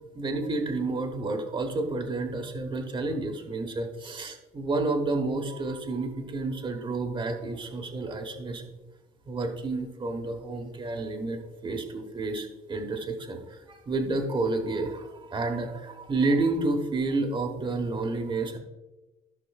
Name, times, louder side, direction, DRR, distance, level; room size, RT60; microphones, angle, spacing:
voice 1, 0.1-8.8 9.3-18.6, right 3 dB, 30° right, 3 dB, 1.2 m, -30 dB
15.0 x 5.7 x 2.4 m, 1.1 s
cardioid pair, 110°, 17 cm